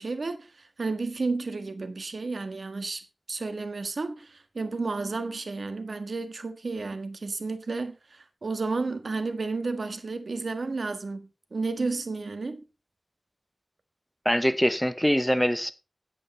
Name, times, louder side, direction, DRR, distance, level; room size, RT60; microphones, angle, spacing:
voice 1, 0.0-12.6, right 3 dB, 75° right, 1.5 m, -32 dB
voice 2, 14.2-15.7, equal, 5° left, 0.8 m, -23 dB
9.8 x 8.6 x 4.2 m
wide cardioid pair, 80°, 0 cm